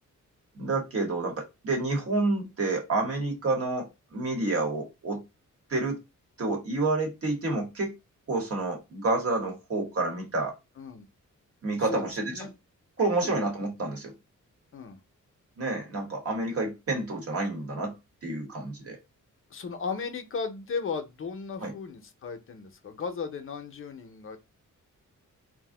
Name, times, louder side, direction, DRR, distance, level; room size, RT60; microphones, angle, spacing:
voice 1, 0.5-5.2 5.7-6.0 6.4-7.9 8.3-10.6 11.6-12.3 13.0-14.1 15.6-17.9 18.2-19.0 21.6-21.7, right 2 dB, 45° right, 1.0 m, -29 dB
voice 2, 10.8-11.1 11.8-12.5 13.2-13.4 14.7-15.0 19.5-24.4, left 5 dB, 45° left, 0.5 m, -36 dB
2.5 x 2.0 x 3.6 m
wide cardioid pair, 160°, 31 cm